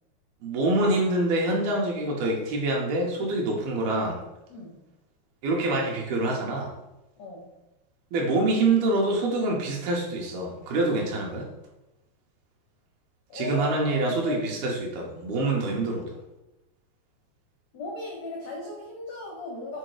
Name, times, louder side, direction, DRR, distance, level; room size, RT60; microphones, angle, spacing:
voice 1, 0.4-4.2 5.4-6.7 8.1-11.5 13.3-16.1, right 2 dB, 70° right, -1 dB, 2.7 m, -26 dB
voice 2, 13.3-14.5 17.7-19.8, left 2 dB, 85° left, -2 dB, 1.5 m, -36 dB
7.8 x 3.5 x 4.9 m, 0.96 s
omnidirectional pair, 5.0 m